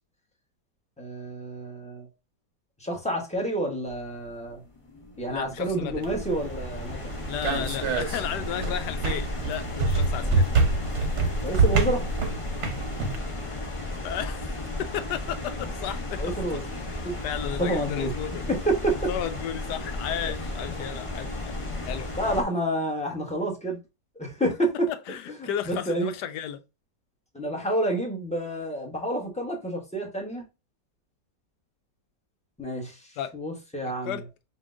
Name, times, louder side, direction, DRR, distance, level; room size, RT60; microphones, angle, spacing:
voice 1, 1.0-2.1 2.8-4.6 5.2-7.0 7.4-7.6 10.2-10.4 11.4-12.0 16.2-16.6 17.0-17.1 17.6-18.1 18.5-19.0 20.2-20.3 21.3-21.4 21.9-23.8 24.2-24.7 25.4-26.1 27.3-30.4 32.6-34.2, right 1 dB, 5° left, 0.7 m, -29 dB
sound 1, 3.9-22.4, left 2 dB, 60° left, 0.3 m, -34 dB
voice 2, 5.3-6.1 7.3-10.5 11.0-11.2 13.2-14.5 14.8-16.3 16.8-18.5 19.1-21.6 21.8-22.1 24.9-26.6 33.2-33.3 34.0-34.3, left 10 dB, 75° left, 1.1 m, -34 dB
sound 2, 6.0-13.2, right 3 dB, 50° right, 1.0 m, -26 dB
5.4 x 2.9 x 2.5 m
omnidirectional pair, 1.9 m